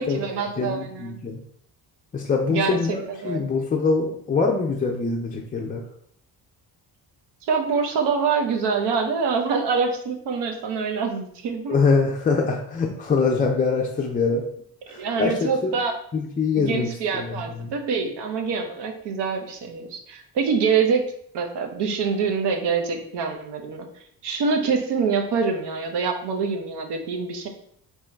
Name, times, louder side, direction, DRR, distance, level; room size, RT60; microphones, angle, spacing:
voice 1, 0.0-1.2 2.5-3.4 7.4-11.7 14.3-14.5 14.9-16.0 16.5-21.0 21.3-23.9 24.2-27.5, right 5 dB, 85° right, 4 dB, 0.9 m, -25 dB
voice 2, 0.6-1.4 2.1-5.8 11.7-14.5 14.9-15.7 16.1-17.7, left 4 dB, 20° left, 0 dB, 0.3 m, -24 dB
3.7 x 2.9 x 4.3 m, 0.68 s
cardioid pair, 145°, 40 cm